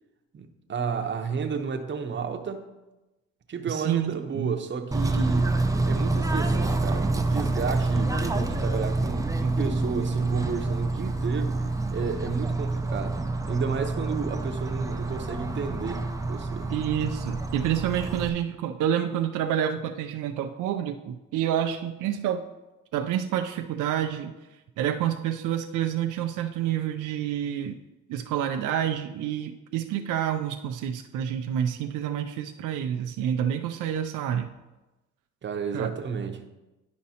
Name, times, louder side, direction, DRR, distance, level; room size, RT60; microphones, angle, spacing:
voice 1, 0.3-2.6 3.5-5.6 5.8-11.6 11.9-13.2 13.5-16.0 16.3-16.7 35.4-36.4, right 5 dB, 40° right, 5 dB, 0.8 m, -31 dB
voice 2, 3.7-4.5 16.7-22.4 22.9-24.3 24.8-27.7 28.1-34.5 35.7-35.9, right 10 dB, 80° right, 5 dB, 0.5 m, -28 dB
Bird / Train, 4.9-18.3, right 2 dB, 10° right, 0.5 m, -27 dB
10.5 x 5.2 x 2.8 m, 1.1 s
cardioid pair, 90°, 30 cm